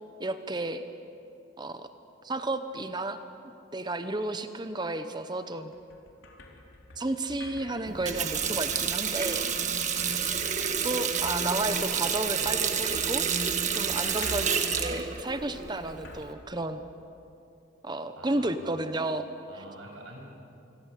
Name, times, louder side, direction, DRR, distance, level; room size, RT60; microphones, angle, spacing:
voice 1, 0.2-0.8 1.6-1.9 2.2-3.2 3.7-5.7 7.0-9.5 10.8-13.2 13.7-16.8 17.8-19.2 19.6-19.7, right 2 dB, 20° right, 9 dB, 1.0 m, -32 dB
sound 1, 5.6-17.1, left 2 dB, 80° left, 3.9 m, -46 dB
Water tap faucet, 7.9-16.3, right 7 dB, 35° right, 1.7 m, -29 dB
voice 2, 18.2-18.6 19.5-20.2, right 1 dB, 80° right, 0 dB, 7.2 m, -46 dB
27.0 x 22.0 x 8.4 m, 2.8 s
head